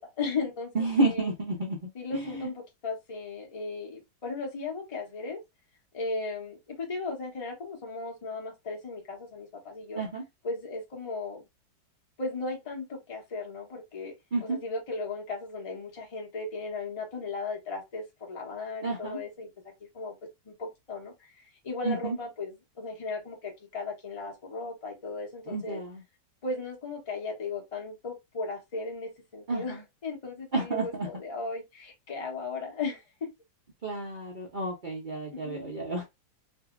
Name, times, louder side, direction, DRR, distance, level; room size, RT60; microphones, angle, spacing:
voice 1, 0.0-1.3 1.9-5.4 5.9-10.0 10.4-11.4 12.2-14.1 14.4-19.5 19.9-20.1 20.4-25.8 26.4-33.3 35.3-35.7, left 3 dB, 35° left, 0.5 m, -36 dB
voice 2, 0.7-2.5 10.0-10.2 14.3-14.6 18.8-19.2 21.8-22.2 25.5-26.0 29.5-29.8 30.5-31.1 33.8-36.0, right 2 dB, 80° right, 0.4 m, -30 dB
2.7 x 2.7 x 2.4 m
omnidirectional pair, 2.1 m